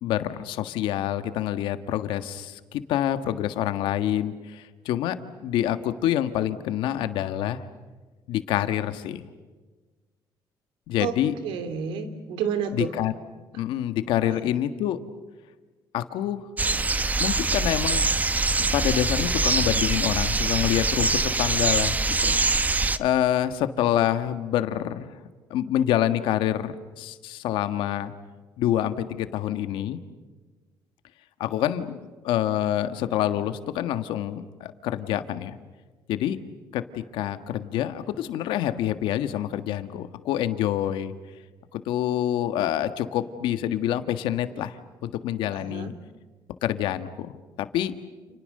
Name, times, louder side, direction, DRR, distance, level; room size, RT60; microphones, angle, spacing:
voice 1, 0.0-5.2 5.4-7.6 8.3-9.2 10.9-11.3 12.7-13.1 13.5-15.0 15.9-16.4 17.2-18.0 18.7-22.3 23.0-25.1 25.5-28.1 28.6-30.0 31.4-31.9 32.2-35.6 36.1-36.4 36.7-41.1 41.7-45.9 46.6-47.9, left 11 dB, 85° left, 10 dB, 1.6 m, -27 dB
voice 2, 11.4-12.9 14.2-14.5 45.5-45.9, right 7 dB, 90° right, 9 dB, 3.1 m, -30 dB
sound 1, 16.6-23.0, right 3 dB, 20° right, 1.1 m, -24 dB
29.5 x 29.5 x 6.7 m, 1.3 s
cardioid pair, 120°, 8 cm